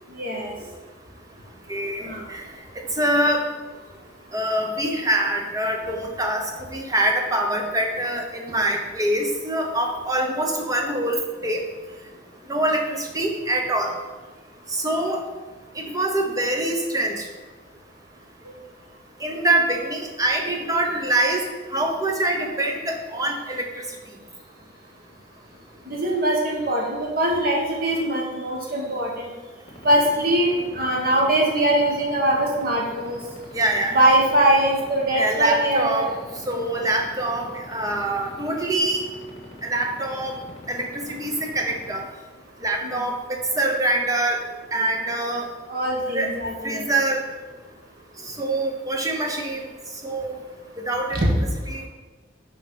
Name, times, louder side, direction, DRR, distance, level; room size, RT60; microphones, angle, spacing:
voice 1, 0.2-0.5 2.0-2.2 25.9-29.3 29.8-33.2 33.9-36.2 36.9-37.0 42.8-43.0 45.7-46.8 51.1-51.3, right 1 dB, 50° right, -1 dB, 1.6 m, -22 dB
voice 2, 1.7-2.4 2.7-3.4 4.3-11.6 12.5-13.9 14.7-15.2 15.7-17.3 19.2-21.4 21.7-23.8 33.5-34.0 35.1-36.1 36.5-39.0 39.6-40.3 40.7-42.0 42.6-44.4 44.7-45.5 46.1-46.3 46.6-47.2 48.2-49.7 50.0-50.4 50.8-51.3 51.7-51.9, right 1 dB, 20° right, 2 dB, 0.9 m, -24 dB
sound 1, 29.7-42.0, left 1 dB, 30° left, 1.6 m, -43 dB
5.9 x 4.5 x 5.6 m, 1.3 s
head